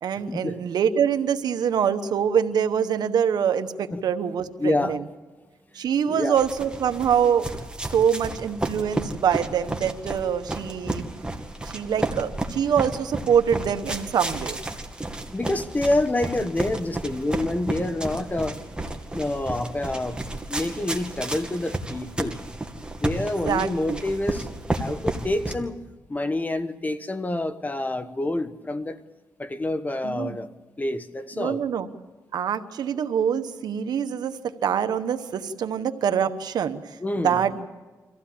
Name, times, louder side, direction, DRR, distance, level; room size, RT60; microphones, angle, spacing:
voice 1, 0.0-5.0 5.7-7.5 7.9-11.1 11.6-14.6 23.4-24.0 30.0-30.4 31.4-31.9 32.3-37.0 37.2-37.7, right 8 dB, 90° right, 10 dB, 1.1 m, -24 dB
voice 2, 4.6-5.0 6.0-6.4 15.3-18.6 19.1-20.2 20.5-22.4 23.0-24.5 24.8-25.8 26.1-29.0 29.4-30.5 30.8-31.6 37.0-37.4, left 2 dB, 25° left, 11 dB, 1.3 m, -27 dB
sound 1, 6.4-25.5, right 2 dB, 15° right, 2.2 m, -32 dB
25.0 x 15.5 x 8.6 m, 1.3 s
cardioid pair, 75°, 7 cm